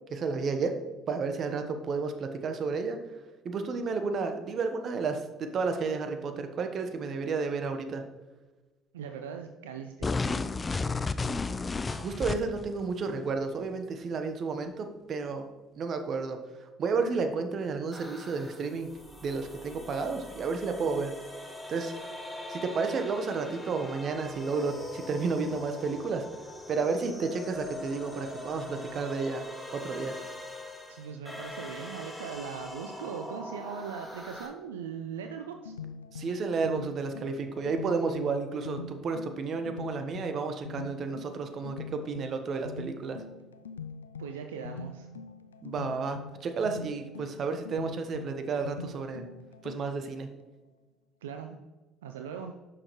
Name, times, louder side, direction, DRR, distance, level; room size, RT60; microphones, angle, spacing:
voice 1, 0.1-0.8 1.1-3.0 3.4-8.0 11.9-15.5 15.8-18.9 19.2-21.1 21.7-22.1 22.5-26.3 26.7-29.4 29.7-30.1 36.1-43.2 45.6-49.3 49.6-50.3, right 4 dB, 50° right, 7 dB, 1.1 m, -32 dB
voice 2, 8.9-10.5 30.9-35.7 44.2-45.1 51.2-51.6 52.0-52.5, right 7 dB, 85° right, 5 dB, 0.5 m, -40 dB
sound 1, 10.0-12.7, left 4 dB, 25° left, 0.5 m, -31 dB
sound 2, 17.9-34.5, left 1 dB, 5° left, 2.7 m, -42 dB
sound 3, 35.3-50.2, left 5 dB, 90° left, 0.3 m, -44 dB
10.5 x 6.5 x 3.2 m, 1.2 s
hypercardioid pair, 55°, 0 cm